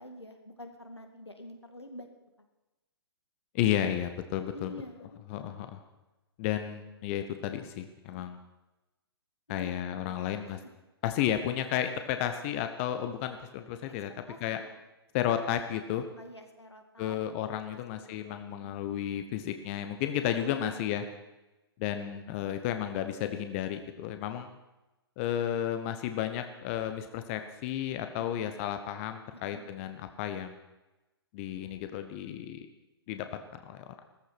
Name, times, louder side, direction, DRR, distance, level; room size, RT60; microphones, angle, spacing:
voice 1, 0.0-2.1 4.5-5.6 8.1-8.3 9.5-10.7 14.3-14.7 16.2-17.2 17.7-18.8 20.5-20.9 28.1-28.3 29.3-29.6, left 1 dB, 85° left, 5 dB, 2.4 m, -47 dB
voice 2, 3.5-4.7 5.3-5.8 6.4-8.4 9.5-10.6 11.0-14.1 14.4-14.6 15.1-16.1 17.0-21.0 21.8-24.5 25.2-30.6 31.3-32.7 33.1-33.8, left 10 dB, 30° left, 8 dB, 1.1 m, -32 dB
16.0 x 14.5 x 6.1 m, 1.0 s
figure-of-eight pair, 120°, 14 cm